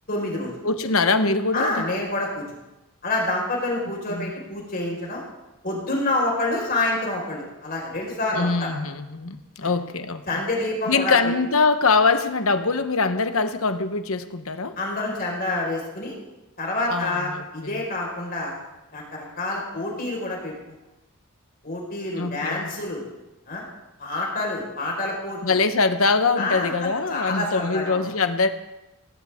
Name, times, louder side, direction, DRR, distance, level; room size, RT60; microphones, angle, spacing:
voice 1, 0.1-0.5 1.5-2.4 3.0-5.2 5.6-8.7 9.6-9.7 10.3-11.3 14.8-16.1 16.6-18.6 18.9-20.5 21.6-23.0 23.5-23.6 24.0-25.5 26.4-26.7 27.1-28.0, left 2 dB, 40° left, -2 dB, 5.0 m, -27 dB
voice 2, 0.6-1.8 4.1-4.3 8.3-10.4 10.9-14.8 16.9-17.8 22.2-22.7 25.4-28.5, left 4 dB, 65° left, 9 dB, 1.0 m, -23 dB
18.0 x 17.0 x 3.7 m, 0.99 s
head